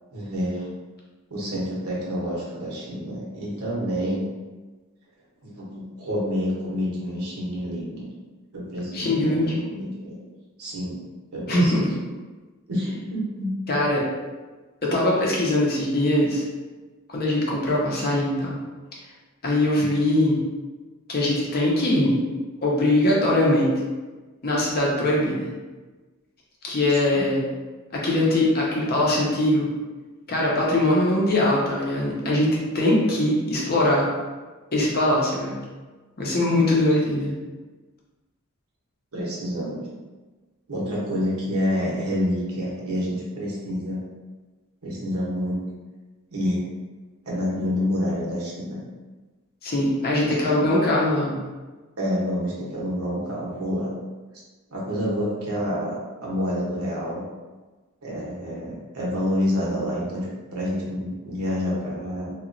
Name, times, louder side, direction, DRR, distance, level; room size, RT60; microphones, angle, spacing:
voice 1, 0.1-0.7 1.3-4.2 5.4-8.1 8.5-10.2 10.6-11.0 11.3-11.8 12.7-13.5 19.8-19.9 27.1-27.2 36.5-36.7 39.1-39.9 40.7-44.0 44.8-45.6 46.3-46.7 47.3-48.8 50.2-50.7 52.0-53.9 54.7-57.2 58.0-60.3 60.5-62.3, equal, 75° right, -5 dB, 0.9 m, -28 dB
voice 2, 8.9-9.5 11.5-11.8 13.7-14.0 14.8-16.4 17.1-18.6 19.4-20.4 21.1-22.2 22.6-23.7 24.4-25.5 26.6-27.4 27.9-29.7 30.3-34.1 34.7-35.6 36.2-37.4 49.6-51.4, left 1 dB, 45° left, -4 dB, 0.7 m, -21 dB
2.9 x 2.3 x 2.5 m, 1.3 s
head